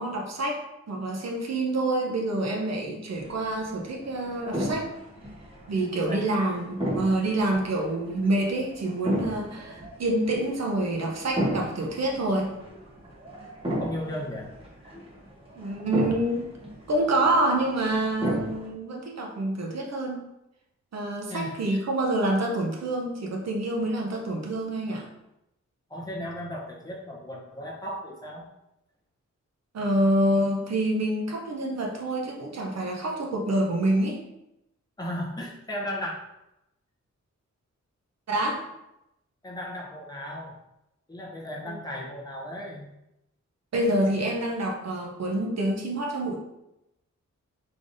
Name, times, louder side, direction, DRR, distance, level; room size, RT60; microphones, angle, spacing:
voice 1, 0.0-4.9 5.7-12.6 15.6-16.4 16.9-20.2 20.9-25.1 29.7-34.2 38.3-38.6 41.6-41.8 43.7-46.4, right 1 dB, 60° right, 1 dB, 0.7 m, -27 dB
sound 1, 3.1-18.7, equal, 20° right, 0.9 m, -35 dB
voice 2, 6.1-6.6 13.8-14.5 14.8-15.0 21.3-21.8 25.9-28.5 35.0-36.1 39.4-40.6 41.1-42.9, equal, 15° left, -3 dB, 0.7 m, -36 dB
3.8 x 3.3 x 2.6 m, 0.89 s
wide cardioid pair, 150°, 29 cm